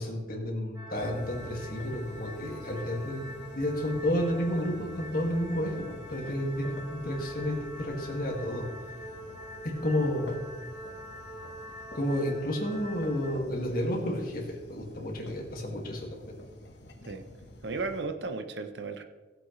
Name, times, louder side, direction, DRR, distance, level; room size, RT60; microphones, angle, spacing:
voice 1, 0.0-3.3 3.5-8.7 9.8-10.3 11.9-16.4, left 1 dB, 50° left, 0 dB, 2.1 m, -31 dB
sound 1, 0.7-13.3, equal, 20° right, 2.3 m, -44 dB
sound 2, 0.9-18.0, left 1 dB, 70° left, 1.3 m, -48 dB
voice 2, 17.6-19.0, right 3 dB, 75° right, 7 dB, 0.8 m, -34 dB
17.0 x 7.6 x 3.2 m, 1.3 s
head